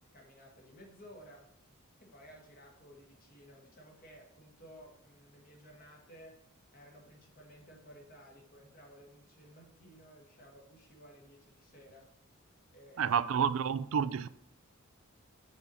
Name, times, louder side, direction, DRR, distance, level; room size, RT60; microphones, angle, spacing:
voice 1, 0.0-1.6 2.0-6.4 6.7-12.1 12.7-13.1, equal, 40° left, 1.5 m, -56 dB
voice 2, 13.0-14.3, right 7 dB, 65° right, 0.3 m, -29 dB
7.0 x 4.1 x 4.1 m
head